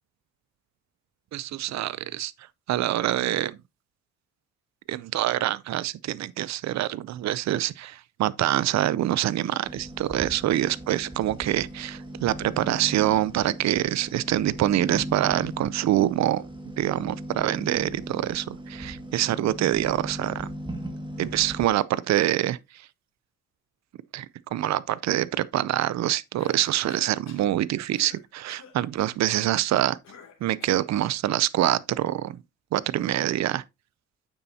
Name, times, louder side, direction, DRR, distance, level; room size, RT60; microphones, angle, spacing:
voice 1, 1.3-3.6 4.9-16.4 16.8-20.5 21.2-22.9 24.1-24.3 24.5-30.0 30.4-32.4 32.7-33.6, right 13 dB, 65° right, 0.6 m, -25 dB
sound 1, 9.6-21.7, right 1 dB, 15° right, 2.0 m, -38 dB
Cough, 26.4-27.5 27.9-28.2 28.5-28.8 30.0-30.9, left 6 dB, 60° left, 2.7 m, -48 dB
9.3 x 6.9 x 2.8 m
cardioid pair, 90°, 30 cm